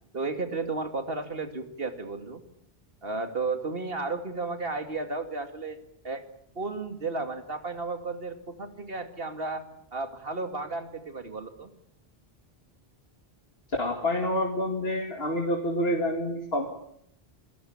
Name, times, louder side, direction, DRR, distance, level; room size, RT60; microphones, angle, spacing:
voice 1, 0.1-2.4 3.0-5.8 6.0-6.2 6.5-9.6 9.9-11.7, right 3 dB, 65° right, 7 dB, 2.7 m, -33 dB
voice 2, 13.8-16.7, left 1 dB, 75° left, 1 dB, 2.7 m, -28 dB
27.0 x 16.5 x 8.8 m, 0.73 s
omnidirectional pair, 1.0 m